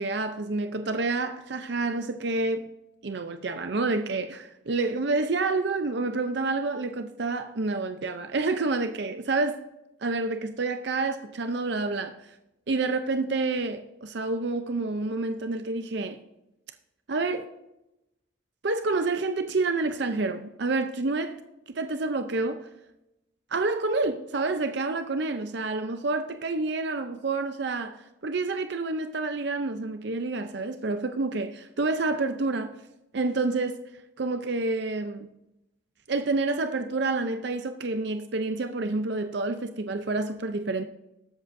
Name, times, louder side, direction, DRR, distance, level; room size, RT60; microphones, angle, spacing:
voice 1, 0.0-2.7 3.0-9.6 10.0-12.1 12.7-16.2 17.1-17.5 18.6-21.4 21.7-22.7 23.5-32.8 33.1-33.8 34.2-35.3 36.1-40.8, right 3 dB, 55° right, 0.6 m, -28 dB
19.5 x 7.7 x 2.6 m
head